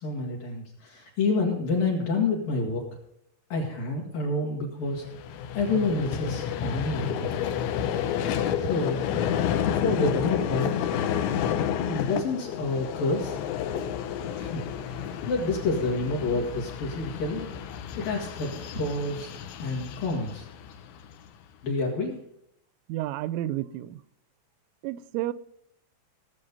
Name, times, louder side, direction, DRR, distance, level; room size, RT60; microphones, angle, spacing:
voice 1, 0.0-2.8 3.5-5.0 5.5-7.3 8.5-9.0 9.6-11.1 11.8-13.4 14.3-17.5 18.0-19.3 19.6-20.5 21.6-22.2, left 3 dB, 55° left, -2 dB, 3.0 m, -28 dB
Vehicle, 4.9-21.3, left 9 dB, 75° left, 3.0 m, -30 dB
voice 2, 22.9-24.0 24.8-25.3, right 14 dB, 90° right, 16 dB, 3.2 m, -31 dB
17.5 x 7.5 x 5.4 m, 0.74 s
omnidirectional pair, 5.6 m